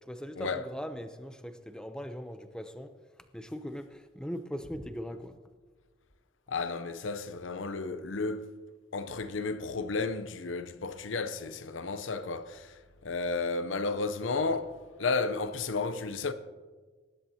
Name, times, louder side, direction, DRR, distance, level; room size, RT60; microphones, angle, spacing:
voice 1, 0.0-3.0 3.3-5.4, equal, 5° left, 0.6 m, -40 dB
voice 2, 6.5-8.5 8.9-16.3, left 3 dB, 85° left, 0.7 m, -33 dB
19.5 x 10.5 x 2.8 m
head